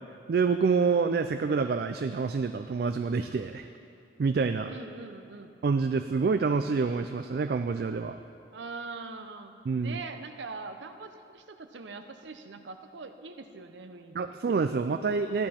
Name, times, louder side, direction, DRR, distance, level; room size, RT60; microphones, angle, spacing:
voice 1, 0.3-3.7 4.2-4.7 5.6-8.2 9.7-10.0 14.1-15.5, right 5 dB, 55° right, 8 dB, 0.3 m, -27 dB
voice 2, 4.6-5.5 8.5-9.5 9.8-14.4, right 4 dB, 85° right, 7 dB, 0.7 m, -42 dB
14.0 x 10.5 x 4.3 m, 2.5 s
head